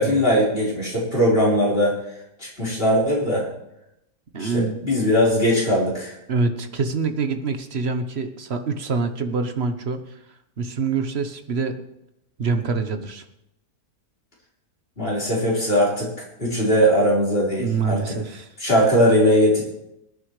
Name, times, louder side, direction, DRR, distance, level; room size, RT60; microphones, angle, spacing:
voice 1, 0.0-2.0 2.4-3.5 4.4-6.1 15.0-16.1 16.4-18.1 18.6-19.6, equal, 30° left, -6 dB, 4.7 m, -20 dB
voice 2, 4.3-4.8 6.3-10.0 10.6-11.8 12.4-13.2 17.6-18.5, right 4 dB, 45° right, 8 dB, 1.1 m, -25 dB
22.5 x 9.7 x 3.2 m, 0.83 s
omnidirectional pair, 1.8 m